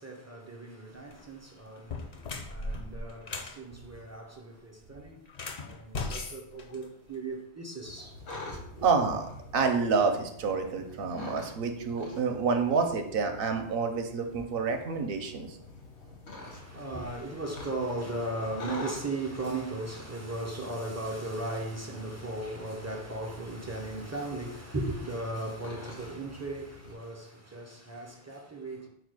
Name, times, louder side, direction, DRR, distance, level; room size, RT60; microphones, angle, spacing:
voice 1, 0.0-5.2 5.6-8.1 8.5-8.9 16.4-28.9, right 2 dB, 30° right, 0.3 m, -37 dB
sound 1, 1.0-1.2 1.8-3.6 5.3-7.3, left 3 dB, 50° left, 0.5 m, -38 dB
sound 2, 7.8-26.9, left 2 dB, 90° left, 1.2 m, -47 dB
voice 2, 8.8-15.6, right 5 dB, 65° right, 0.7 m, -28 dB
4.8 x 2.2 x 4.7 m
omnidirectional pair, 1.1 m